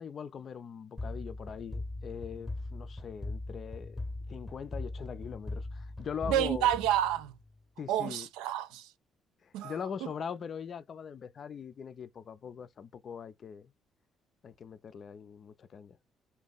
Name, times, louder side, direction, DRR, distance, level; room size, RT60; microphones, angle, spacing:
voice 1, 0.0-4.0 4.3-6.7 7.8-8.3 9.4-13.7 14.4-16.0, left 7 dB, 55° left, 0.4 m, -41 dB
sound 1, 1.0-7.6, left 2 dB, 15° left, 0.8 m, -40 dB
voice 2, 6.3-7.4 7.9-8.9 9.5-9.8 10.0-10.1, right 11 dB, 80° right, 0.3 m, -29 dB
2.6 x 2.2 x 3.9 m
hypercardioid pair, 50°, 0 cm